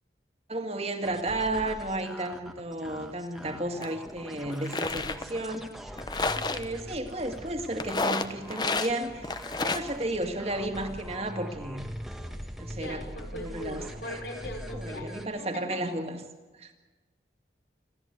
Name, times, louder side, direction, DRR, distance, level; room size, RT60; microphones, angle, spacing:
voice 1, 0.5-5.7 6.2-9.3 9.6-11.8 12.6-13.0 13.3-14.2 14.7-16.2 16.6-16.7, right 1 dB, 35° right, 5 dB, 1.9 m, -33 dB
sound 1, 1.0-15.3, equal, ahead, 1.2 m, -42 dB
sound 2, 3.8-3.9 4.5-5.2 6.0-6.6 7.8-8.9 9.2-9.9, left 3 dB, 25° left, 0.9 m, -30 dB
voice 2, 12.8-15.8, left 1 dB, 85° left, 3 dB, 4.9 m, -40 dB
26.5 x 13.5 x 8.2 m, 1.2 s
head